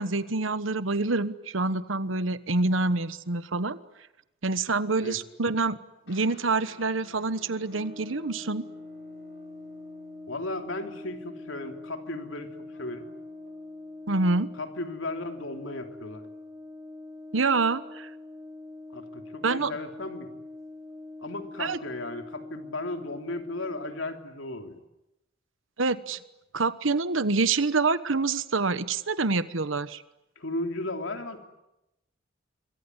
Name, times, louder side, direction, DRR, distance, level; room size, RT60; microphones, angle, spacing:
voice 1, 0.0-3.8 4.4-5.8 6.1-8.6 14.1-14.5 17.3-18.1 19.4-19.7 21.6-21.8 25.8-26.2 26.5-30.0, right 3 dB, 90° right, 14 dB, 1.2 m, -26 dB
sound 1, 6.1-15.8, left 2 dB, 65° left, 7.3 m, -57 dB
Brass instrument, 7.7-24.1, left 2 dB, 20° right, 2.9 m, -44 dB
voice 2, 10.3-13.1 14.6-16.2 18.9-20.3 21.2-24.8 30.3-31.5, left 2 dB, 85° left, 5 dB, 3.3 m, -35 dB
27.0 x 23.0 x 9.7 m, 0.91 s
head